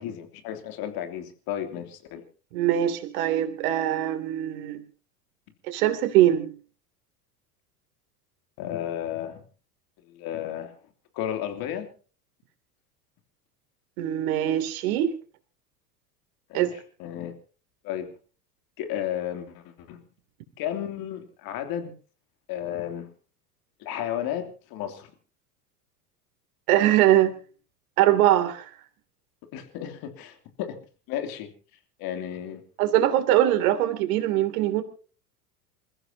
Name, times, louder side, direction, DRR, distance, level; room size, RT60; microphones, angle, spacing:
voice 1, 0.0-2.2 8.6-9.4 10.1-10.7 11.1-11.9 16.5-16.7 17.0-17.4 17.8-18.1 18.8-20.0 20.6-21.9 22.5-23.1 23.8-25.1 29.5-30.8 31.1-31.5 32.0-32.6, left 10 dB, 50° left, 6 dB, 3.1 m, -33 dB
voice 2, 2.5-4.8 5.7-6.5 14.0-15.1 16.5-16.7 26.7-27.3 28.0-28.7 32.8-34.8, right 13 dB, 60° right, 7 dB, 3.0 m, -22 dB
28.0 x 15.0 x 2.9 m, 0.38 s
hypercardioid pair, 85°, 47 cm